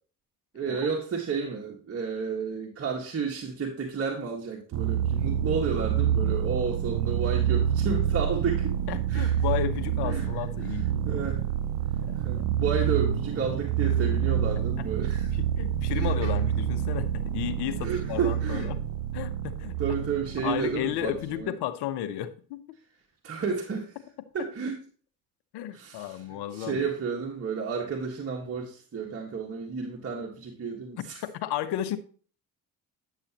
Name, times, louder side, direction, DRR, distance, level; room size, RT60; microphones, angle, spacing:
voice 1, 0.5-8.8 9.1-9.3 10.0-10.3 11.0-11.4 12.1-15.3 15.9-16.1 17.8-18.7 19.8-21.5 23.2-23.9 24.3-24.8 25.7-31.2, right 5 dB, 35° right, -1 dB, 1.6 m, -31 dB
sound 1, 4.7-21.4, right 9 dB, 60° right, 0.7 m, -27 dB
voice 2, 8.9-11.1 12.1-12.4 15.0-18.8 19.1-19.8 20.4-22.6 25.5-26.9 31.2-32.0, left 12 dB, 75° left, 12 dB, 1.0 m, -33 dB
10.0 x 6.9 x 2.9 m, 0.42 s
supercardioid pair, 75°, 40 cm